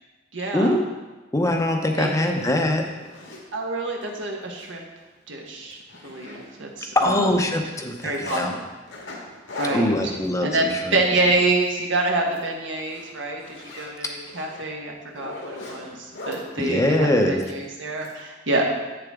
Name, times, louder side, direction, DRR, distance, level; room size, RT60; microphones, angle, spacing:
voice 1, 0.3-0.8 2.0-2.3 3.5-4.8 5.3-5.8 6.0-7.2 8.0-8.6 9.6-10.1 10.4-18.6, right 2 dB, 80° right, 0 dB, 1.3 m, -27 dB
voice 2, 1.3-2.8 6.9-8.5 9.7-11.0 16.6-17.4, left 1 dB, 15° left, 3 dB, 0.7 m, -22 dB
Zipper (clothing), 1.6-1.7 2.1-3.4 4.0-4.2 4.5-4.7 5.0-5.1 5.5-6.8 7.0-8.4 8.9-11.8 12.2-12.4 12.8-16.4 17.4-18.1, left 2 dB, 90° left, 1.9 m, -40 dB
8.7 x 6.7 x 3.6 m, 1.2 s
head